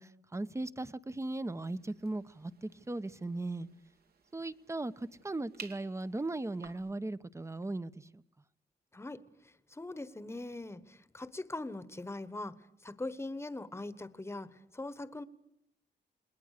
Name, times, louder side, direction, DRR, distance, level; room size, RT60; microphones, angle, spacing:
voice 1, 0.0-3.7 4.3-8.2, right 2 dB, 15° right, 0.9 m, -38 dB
sound 1, 1.5-6.9, right 6 dB, 65° right, 2.2 m, -55 dB
voice 2, 8.9-9.2 9.7-12.6 12.8-15.2, left 2 dB, 15° left, 1.3 m, -41 dB
29.0 x 21.0 x 6.7 m
cardioid pair, 100°, 17 cm